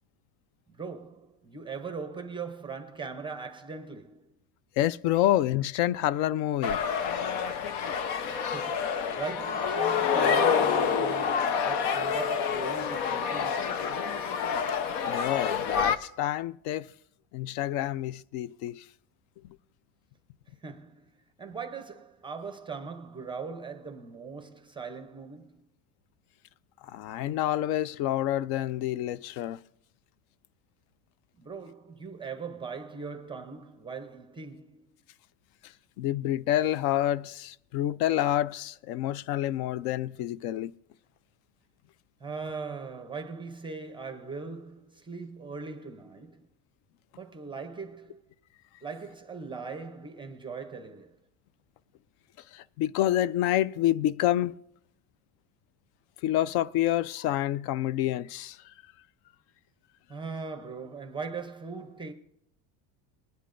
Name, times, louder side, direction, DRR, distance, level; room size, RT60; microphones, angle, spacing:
voice 1, 0.7-4.4 8.2-13.9 20.6-25.7 31.4-34.9 42.2-46.5 47.2-48.2 48.8-51.2 60.1-62.1, right 5 dB, 10° right, 0.6 m, -40 dB
voice 2, 4.8-6.8 15.1-16.9 17.3-18.8 26.8-29.6 36.0-40.7 52.5-54.6 56.2-58.6, left 13 dB, 60° left, 0.5 m, -28 dB
sound 1, 6.6-16.0, left 6 dB, 85° left, 0.9 m, -28 dB
20.5 x 10.0 x 2.5 m
cardioid pair, 150°, 44 cm